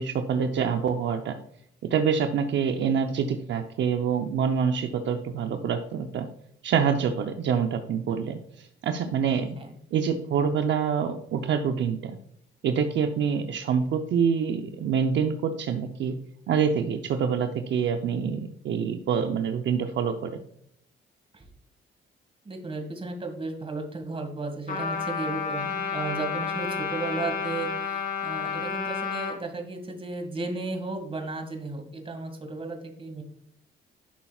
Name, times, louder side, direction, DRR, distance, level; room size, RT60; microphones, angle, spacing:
voice 1, 0.0-1.3 1.9-6.3 6.6-9.5 9.9-12.2 12.6-16.1 16.5-20.4, right 7 dB, 65° right, 6 dB, 0.7 m, -26 dB
voice 2, 22.4-33.2, right 3 dB, 30° right, 5 dB, 2.0 m, -34 dB
Trumpet, 24.7-29.4, left 6 dB, 50° left, 2.7 m, -31 dB
11.5 x 5.7 x 2.4 m, 0.72 s
cardioid pair, 90°, 20 cm